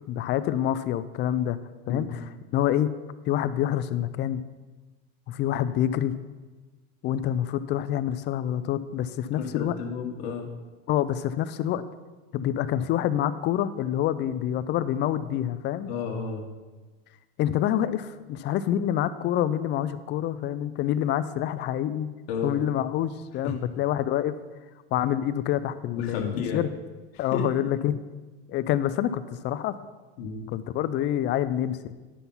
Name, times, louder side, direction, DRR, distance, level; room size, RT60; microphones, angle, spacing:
voice 1, 0.1-1.6 1.9-2.2 2.5-2.9 3.3-4.4 5.3-6.2 7.0-9.7 10.9-11.8 12.3-15.9 17.4-22.1 22.4-24.3 24.9-26.3 26.5-26.7 27.2-28.0 28.5-29.7 30.5-31.9, left 11 dB, 35° left, 13 dB, 0.5 m, -27 dB
voice 2, 9.4-10.5 15.9-16.5 22.3-22.6 23.4-23.5 25.9-26.6 27.1-27.5 30.2-30.5, left 6 dB, 75° left, 1 dB, 1.4 m, -32 dB
9.9 x 5.8 x 5.5 m, 1.2 s
supercardioid pair, 130°, 31 cm